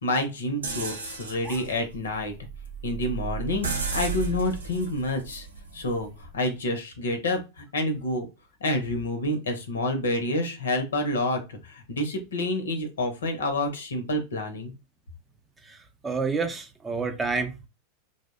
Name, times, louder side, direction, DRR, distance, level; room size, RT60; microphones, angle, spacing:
voice 1, 0.0-2.3 2.8-5.5 5.7-6.1 6.3-8.3 8.6-14.7, left 1 dB, 80° left, 6 dB, 0.6 m, -28 dB
sound 1, 0.6-6.4, right 5 dB, 85° right, 0.5 m, -35 dB
voice 2, 15.6-17.7, right 4 dB, 20° right, 6 dB, 0.4 m, -30 dB
2.6 x 2.0 x 2.3 m, 0.27 s
hypercardioid pair, 95°, 0 cm